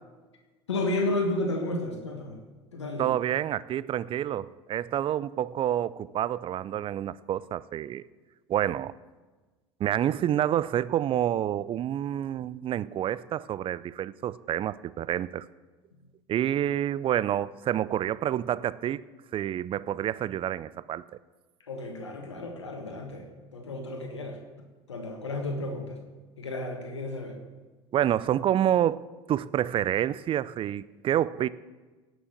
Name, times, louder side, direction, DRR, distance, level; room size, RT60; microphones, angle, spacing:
voice 1, 0.7-2.4 2.7-3.1 21.7-23.3 23.5-24.4 24.9-26.0 26.4-27.4, left 2 dB, 90° left, 3 dB, 1.5 m, -32 dB
voice 2, 3.0-8.0 8.5-8.9 9.8-15.5 16.3-19.0 19.3-21.0 27.9-29.0 29.3-31.5, right 11 dB, 40° right, 18 dB, 0.5 m, -28 dB
17.0 x 6.2 x 7.2 m, 1.3 s
hypercardioid pair, 70°, 14 cm